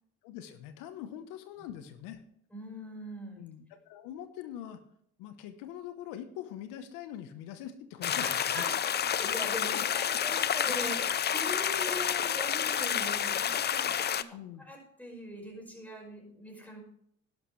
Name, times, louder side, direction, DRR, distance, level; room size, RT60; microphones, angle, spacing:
voice 1, 0.2-2.2 3.4-4.8 5.2-8.6 9.6-9.8 10.7-10.9 14.3-14.6, left 10 dB, 85° left, 9 dB, 1.1 m, -43 dB
voice 2, 2.5-3.4 8.2-16.8, equal, 5° left, 0 dB, 5.0 m, -42 dB
sound 1, 8.0-14.2, left 9 dB, 35° left, 0.5 m, -29 dB
11.5 x 11.0 x 3.2 m, 0.69 s
supercardioid pair, 80°, 31 cm